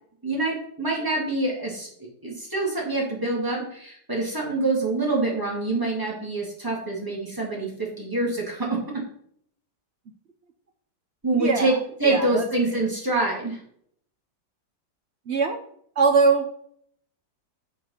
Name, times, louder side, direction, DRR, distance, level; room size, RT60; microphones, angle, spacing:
voice 1, 0.2-8.7 11.2-11.7 12.0-13.6, right 2 dB, 10° right, -3 dB, 2.3 m, -26 dB
voice 2, 11.4-11.8 12.0-12.5 15.3-15.6 16.0-16.5, right 4 dB, 65° right, 5 dB, 0.6 m, -21 dB
7.0 x 5.3 x 5.7 m, 0.66 s
omnidirectional pair, 2.0 m